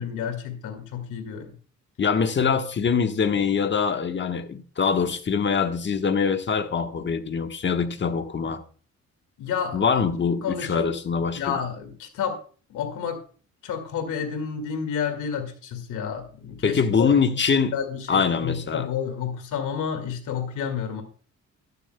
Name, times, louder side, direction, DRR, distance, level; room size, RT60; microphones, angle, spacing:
voice 1, 0.0-1.5 9.4-10.0 10.4-10.9 11.4-12.4 12.7-13.2 13.6-17.2 17.5-21.0, left 7 dB, 85° left, 2.1 m, -30 dB
voice 2, 2.0-8.6 9.7-11.6 16.6-17.8 18.1-18.9, left 6 dB, 40° left, 1.2 m, -23 dB
12.0 x 12.0 x 2.2 m
cardioid pair, 90°, 30 cm